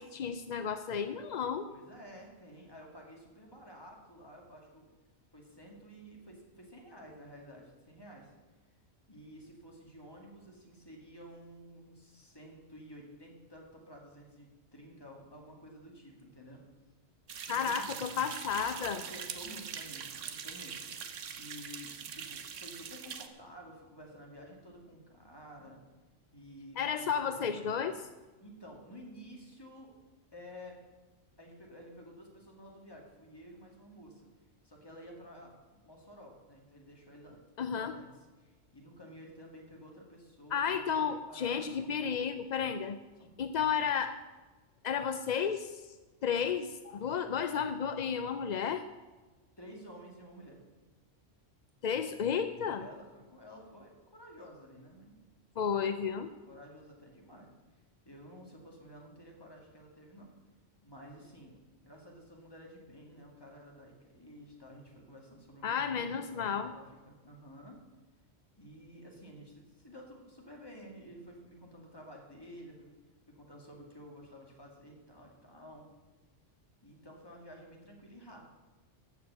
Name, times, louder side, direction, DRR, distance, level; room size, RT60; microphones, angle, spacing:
voice 1, 0.0-1.7 17.5-19.0 26.8-27.9 37.6-37.9 40.5-43.0 43.4-44.2 44.8-45.8 46.2-48.8 51.8-52.9 55.6-56.3 65.6-66.7, left 7 dB, 60° left, 10 dB, 0.4 m, -32 dB
voice 2, 1.7-4.9 5.3-8.3 9.1-16.6 17.5-18.0 18.9-25.8 26.3-27.9 28.4-29.9 30.3-30.8 31.4-34.3 34.6-35.5 35.8-37.4 37.7-42.1 43.2-43.9 49.6-50.6 52.6-55.2 56.4-57.5 58.1-60.3 60.8-61.5 61.8-65.8 66.0-67.8 68.6-72.9 73.3-75.9 76.8-78.5, equal, 20° left, 0 dB, 2.2 m, -52 dB
sound 1, 17.3-23.3, right 7 dB, 80° right, 1.2 m, -43 dB
14.0 x 5.0 x 8.2 m, 1.2 s
omnidirectional pair, 1.3 m